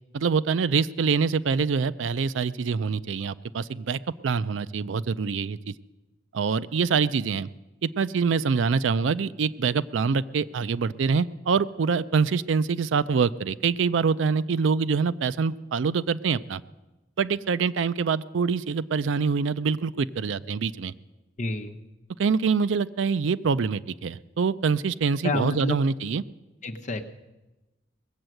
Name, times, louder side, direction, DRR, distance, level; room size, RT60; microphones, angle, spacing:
voice 1, 0.1-5.7 6.3-7.5 7.8-16.6 17.2-20.9 22.2-26.2, right 5 dB, 80° right, 17 dB, 0.4 m, -25 dB
voice 2, 21.4-21.8 25.2-25.8 26.6-27.0, left 2 dB, 40° left, 5 dB, 1.0 m, -29 dB
19.5 x 8.0 x 7.7 m, 1.1 s
head